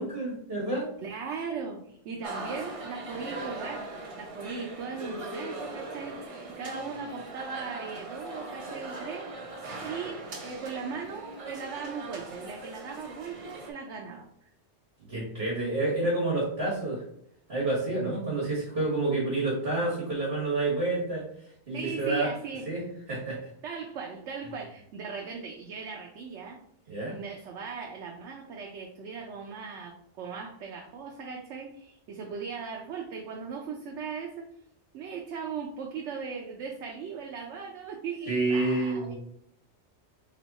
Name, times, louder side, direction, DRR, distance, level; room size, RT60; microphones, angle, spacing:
voice 1, 0.0-0.9 15.1-17.0 17.5-21.2 21.7-22.3 22.6-22.8 23.1-23.5 26.9-27.2 38.3-39.1, right 2 dB, 60° right, -4 dB, 1.6 m, -29 dB
voice 2, 1.0-3.9 4.2-14.5 21.7-22.7 23.6-26.6 27.1-34.5 34.9-39.1, right 5 dB, 90° right, 1 dB, 0.9 m, -38 dB
sound 1, 2.2-13.7, right 2 dB, 35° right, 0.6 m, -40 dB
3.5 x 3.2 x 4.0 m, 0.72 s
omnidirectional pair, 1.2 m